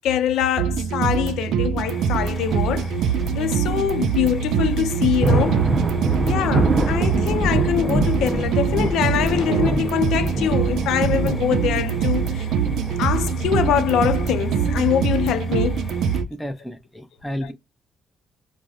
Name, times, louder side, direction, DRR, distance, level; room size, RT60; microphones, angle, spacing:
voice 1, 0.0-2.9 3.4-5.6 6.2-12.5 13.0-15.9 17.4-17.5, left 10 dB, 85° left, 0.5 m, -23 dB
sound 1, 0.6-16.3, right 6 dB, 80° right, 0.4 m, -23 dB
sound 2, 1.9-16.2, left 2 dB, 35° left, 1.2 m, -37 dB
sound 3, 2.3-2.6 3.2-3.3 3.7-3.8 4.9-15.2, right 2 dB, 45° right, 0.6 m, -26 dB
voice 2, 6.1-6.5 16.3-17.5, equal, 5° left, 0.6 m, -31 dB
5.0 x 2.1 x 2.4 m
cardioid pair, 90°, 0 cm